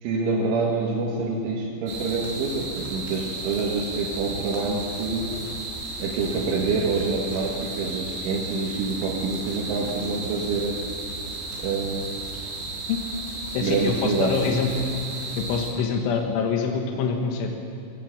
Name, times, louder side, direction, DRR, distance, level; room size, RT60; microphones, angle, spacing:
voice 1, 0.0-5.3 6.0-10.8 11.6-12.1 13.6-14.3, right 4 dB, 85° right, -3 dB, 4.2 m, -26 dB
sound 1, 1.9-15.7, right 2 dB, 65° right, 6.8 m, -34 dB
voice 2, 13.6-14.8 15.4-17.5, left 5 dB, 85° left, 3 dB, 3.8 m, -25 dB
19.5 x 18.0 x 7.7 m, 2.6 s
omnidirectional pair, 5.5 m